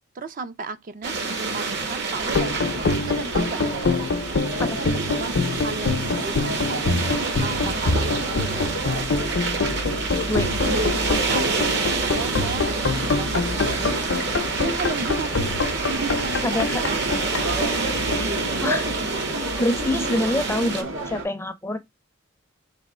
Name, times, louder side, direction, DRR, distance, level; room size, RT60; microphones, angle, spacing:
voice 1, 0.1-4.1 5.0-9.2 10.6-15.3 16.0-17.0, right 4 dB, 45° right, 0.4 m, -35 dB
sound 1, 1.0-20.8, right 4 dB, 60° right, 1.0 m, -28 dB
sound 2, 2.2-21.2, right 1 dB, 90° right, 1.4 m, -31 dB
sound 3, 2.3-19.1, left 3 dB, 70° left, 0.6 m, -26 dB
voice 2, 10.3-10.7 16.4-16.8 18.6-18.9 19.6-21.8, left 1 dB, 15° left, 0.5 m, -25 dB
3.4 x 2.9 x 4.2 m
head